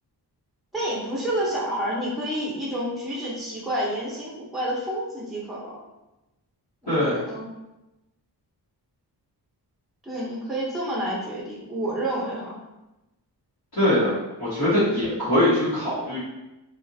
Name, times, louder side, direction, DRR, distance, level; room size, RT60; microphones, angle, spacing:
voice 1, 0.7-5.7 6.8-7.5 10.0-12.5, right 1 dB, ahead, -6 dB, 0.7 m, -29 dB
voice 2, 6.9-7.2 13.7-16.2, left 1 dB, 60° left, -13 dB, 1.2 m, -22 dB
2.8 x 2.4 x 2.6 m, 0.99 s
wide cardioid pair, 110°, 41 cm